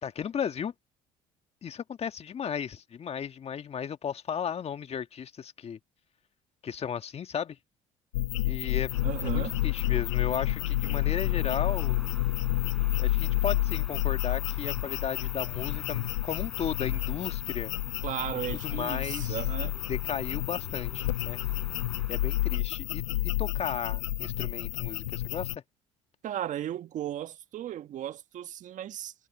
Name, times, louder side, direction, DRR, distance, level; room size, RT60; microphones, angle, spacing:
voice 1, 0.0-0.7 1.6-5.8 6.6-7.6 8.4-8.9 9.2-12.0 13.0-17.7 18.5-19.4 19.9-21.4 22.1-25.6, left 7 dB, 40° left, 1.6 m, -35 dB
sound 1, 8.1-25.6, left 17 dB, 90° left, 0.5 m, -30 dB
sound 2, 8.9-22.6, equal, ahead, 4.0 m, -49 dB
voice 2, 9.0-9.6 18.0-19.8 26.2-29.1, right 11 dB, 55° right, 1.7 m, -35 dB
hypercardioid pair, 65°, 15 cm